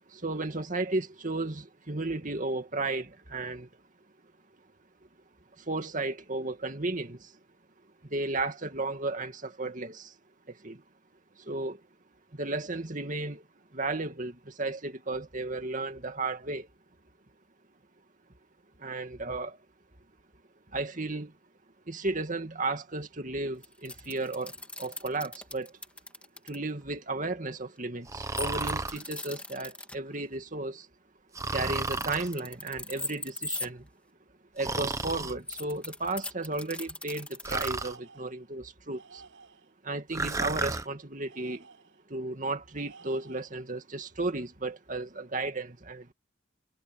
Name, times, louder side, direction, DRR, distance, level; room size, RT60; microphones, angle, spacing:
voice 1, 0.1-3.7 5.6-7.3 8.0-10.1 10.5-10.8 11.4-11.8 12.3-13.4 13.7-16.7 18.8-19.6 20.7-21.3 21.9-25.7 26.4-30.9 31.5-33.9 34.5-39.2 39.8-41.7 42.1-46.1, right 2 dB, 40° right, 2.3 m, -34 dB
sound 1, 23.6-26.6 28.3-30.0 31.7-33.7 34.6-37.7, left 2 dB, 5° left, 2.9 m, -39 dB
Breathing, 28.1-29.0 31.3-32.3 34.6-35.3 37.4-38.0 40.1-40.9, right 3 dB, 15° right, 0.9 m, -32 dB
Tools, 37.6-38.5 38.9-39.7 40.1-42.0 42.7-43.6, right 4 dB, 90° right, 6.4 m, -54 dB
head